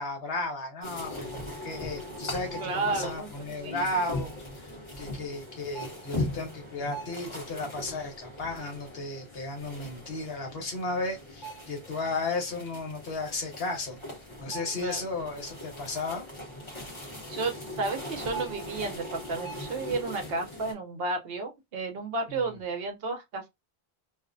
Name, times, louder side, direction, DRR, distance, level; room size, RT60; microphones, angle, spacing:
voice 1, 0.0-14.0 14.4-16.2 22.3-22.5, left 2 dB, 65° left, 1.1 m, -34 dB
sound 1, 0.8-20.7, left 1 dB, 30° left, 0.9 m, -40 dB
voice 2, 2.6-3.3 3.6-3.8 14.8-15.0 16.9-23.5, right 3 dB, 65° right, 0.8 m, -32 dB
2.5 x 2.1 x 2.5 m
omnidirectional pair, 1.1 m